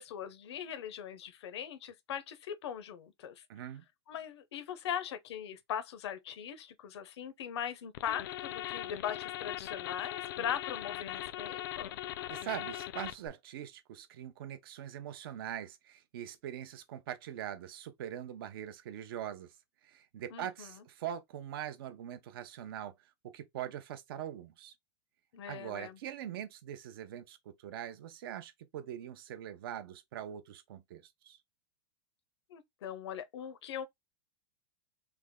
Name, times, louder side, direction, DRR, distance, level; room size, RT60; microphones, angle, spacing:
voice 1, 0.0-3.4 4.1-12.0 20.3-20.7 25.3-26.0 32.5-33.9, left 9 dB, 80° left, 0.7 m, -40 dB
voice 2, 3.5-3.9 12.3-19.6 19.8-22.9 23.2-24.7 25.5-31.4, right 10 dB, 60° right, 0.6 m, -42 dB
sound 1, 7.9-13.3, left 13 dB, 50° left, 0.4 m, -40 dB
3.4 x 2.1 x 3.5 m
supercardioid pair, 170°, 14 cm